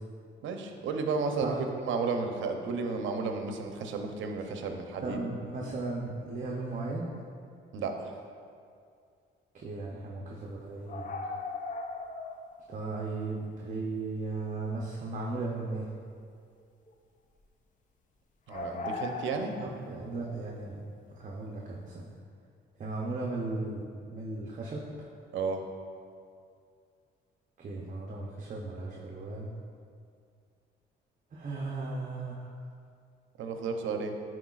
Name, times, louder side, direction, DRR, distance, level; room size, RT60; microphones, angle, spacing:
voice 1, 0.4-5.2 7.7-8.1 18.5-19.6 25.3-25.6 33.4-34.2, right 4 dB, 75° right, 5 dB, 0.7 m, -33 dB
voice 2, 5.0-7.1 9.5-11.1 12.7-15.9 19.6-20.8 21.2-22.1 22.8-23.8 24.1-25.1 27.6-29.5 31.3-32.5, right 3 dB, 40° right, -3 dB, 0.7 m, -36 dB
sound 1, 10.9-12.7 12.9-13.0 15.5-16.2 16.6-16.9 18.5-19.9, left 3 dB, 40° left, 0.5 m, -38 dB
9.9 x 4.5 x 2.4 m, 2.3 s
cardioid pair, 90°, 20 cm